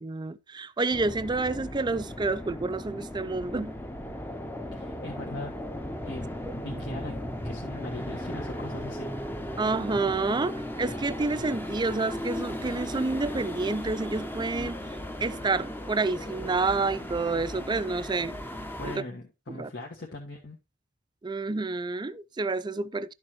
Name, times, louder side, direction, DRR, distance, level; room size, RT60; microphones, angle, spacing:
voice 1, 0.0-3.7 9.6-14.8 15.2-18.3 18.8-19.0 19.5-19.7 21.2-23.1, right 3 dB, 20° right, 0.4 m, -29 dB
sound 1, 0.9-19.0, equal, 10° left, 0.8 m, -36 dB
voice 2, 4.7-5.5 6.0-6.3 6.5-9.1 18.8-20.6, left 2 dB, 60° left, 1.5 m, -40 dB
11.5 x 6.8 x 3.1 m
head